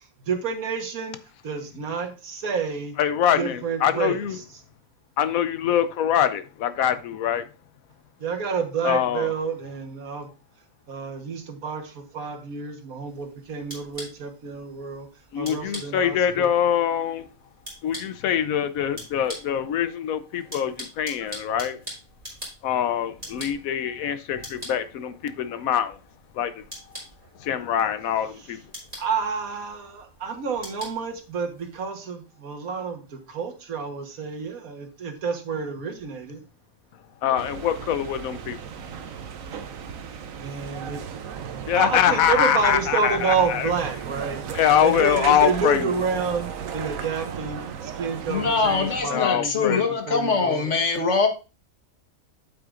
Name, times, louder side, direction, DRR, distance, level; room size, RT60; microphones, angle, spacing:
voice 1, 0.2-1.2 1.4-2.9 3.3-4.2 8.2-10.3 10.9-15.1 15.4-16.5 29.0-36.4 40.4-41.0 41.7-44.4 44.8-50.7, right 5 dB, 90° right, 1.7 m, -29 dB
voice 2, 3.0-4.4 5.2-7.4 8.8-9.3 15.3-17.3 17.8-21.8 22.6-26.0 26.4-26.5 27.4-28.6 37.2-38.6 41.7-43.7 44.5-45.9 49.1-49.9, left 9 dB, 85° left, 1.1 m, -24 dB
sound 1, 13.1-31.9, equal, 25° right, 4.2 m, -44 dB
sound 2, 37.4-49.0, right 7 dB, 75° right, 1.2 m, -35 dB
voice 3, 48.3-51.3, left 4 dB, 60° left, 1.6 m, -23 dB
8.6 x 7.9 x 2.5 m
omnidirectional pair, 1.4 m